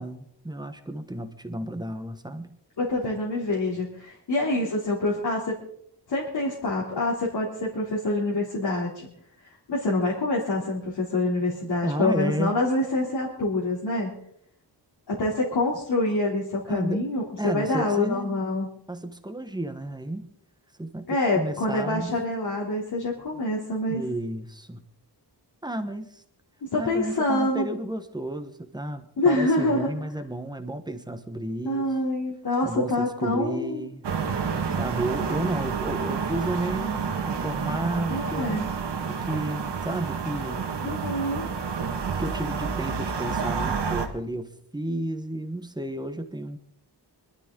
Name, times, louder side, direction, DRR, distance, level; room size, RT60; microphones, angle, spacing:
voice 1, 0.0-2.5 11.8-12.6 16.7-17.0 17.4-18.4 18.9-20.3 20.8-21.1 21.3-22.2 23.9-24.8 25.6-26.2 26.8-31.9 32.6-34.1 34.8-38.6 39.1-40.7 42.1-46.6, right 1 dB, 10° right, 9 dB, 1.1 m, -32 dB
voice 2, 2.8-5.6 6.1-9.1 9.7-14.1 15.1-18.7 21.1-24.0 26.6-27.7 29.2-29.9 31.6-33.9 38.1-38.6 40.8-41.5, left 2 dB, 70° left, -5 dB, 3.3 m, -26 dB
sound 1, 34.0-44.1, right 5 dB, 90° right, 1.9 m, -29 dB
25.0 x 12.5 x 3.8 m, 0.67 s
wide cardioid pair, 170°, 41 cm